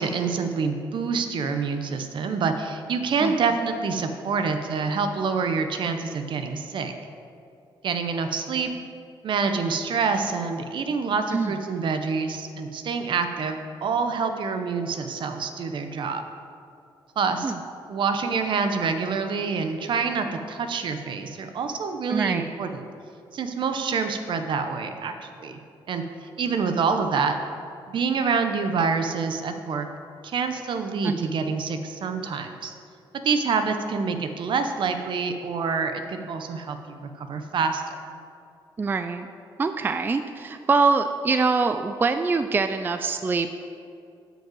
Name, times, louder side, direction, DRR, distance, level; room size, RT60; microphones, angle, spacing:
voice 1, 0.0-6.9 7.8-8.7 9.2-16.2 17.2-17.5 17.9-22.8 23.3-25.6 25.9-26.0 26.4-27.4 27.9-29.9 30.2-32.7 33.2-37.8, right 5 dB, 60° right, 7 dB, 0.8 m, -26 dB
voice 2, 22.1-22.6 31.0-31.3 38.8-39.3 39.6-43.5, right 4 dB, 20° right, 8 dB, 0.3 m, -24 dB
8.9 x 5.4 x 7.8 m, 2.5 s
cardioid pair, 125°, 9 cm